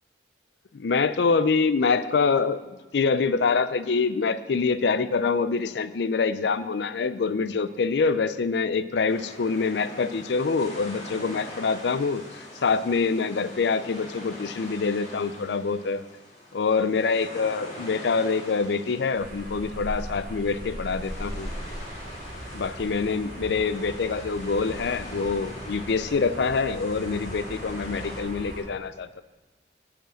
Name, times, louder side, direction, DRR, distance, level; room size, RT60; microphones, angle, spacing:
voice 1, 0.7-2.6 2.9-16.0 16.5-21.5 22.5-29.2, left 4 dB, 75° left, 14 dB, 0.4 m, -25 dB
sound 1, 9.1-28.2, left 1 dB, 40° left, 2.2 m, -43 dB
sound 2, 19.1-28.6, equal, 50° right, 2.7 m, -38 dB
9.9 x 5.0 x 7.7 m, 1.2 s
head